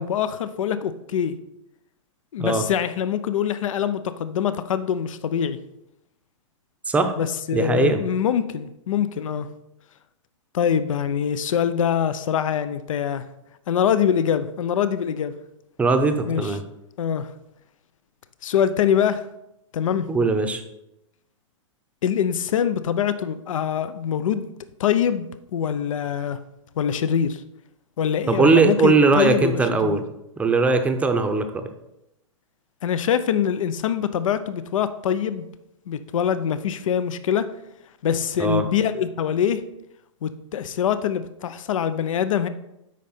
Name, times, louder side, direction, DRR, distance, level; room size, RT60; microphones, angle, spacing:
voice 1, 0.0-1.3 2.3-5.6 7.2-9.5 10.5-13.3 13.7-15.3 16.2-16.5 17.0-17.3 18.4-19.2 19.7-20.1 22.0-24.5 24.8-26.4 26.8-27.4 28.0-30.0 32.8-35.4 35.9-37.5 38.0-39.6 40.2-42.5, left 8 dB, 80° left, 13 dB, 0.6 m, -24 dB
voice 2, 7.5-8.0 15.8-16.6 20.1-20.6 28.3-30.0 30.4-31.7 38.4-38.6, right 3 dB, 10° right, 6 dB, 0.6 m, -20 dB
8.3 x 5.2 x 4.3 m, 0.86 s
hypercardioid pair, 140°, 17 cm